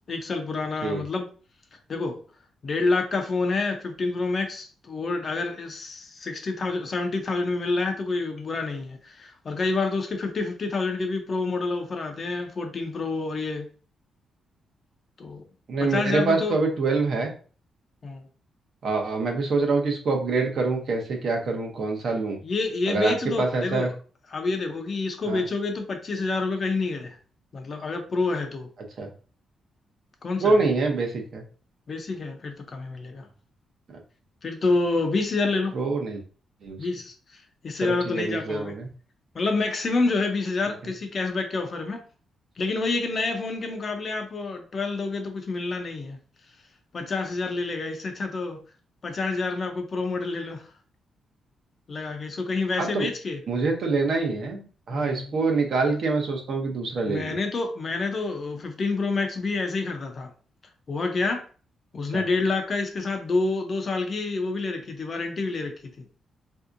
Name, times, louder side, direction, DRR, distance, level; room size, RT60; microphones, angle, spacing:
voice 1, 0.1-1.3 1.9-2.2 2.6-13.7 15.2-15.4 15.8-16.6 18.0-18.2 22.4-23.9 24.3-27.2 27.5-28.7 30.2-30.6 31.9-33.3 34.4-35.7 36.8-38.8 39.3-42.0 42.6-46.2 46.9-48.6 49.0-50.6 51.9-53.4 54.9-55.4 57.1-60.3 60.9-61.4 61.9-65.7, left 3 dB, 35° left, 0.5 m, -28 dB
voice 2, 15.7-17.3 18.8-22.4 22.9-23.9 25.3-25.4 29.0-29.1 30.4-31.4 35.7-36.2 36.6-36.8 37.8-38.9 52.8-53.1 53.5-57.4 62.1-62.2, right 3 dB, 50° right, 0.7 m, -25 dB
3.4 x 2.7 x 2.5 m
wide cardioid pair, 165°, 0 cm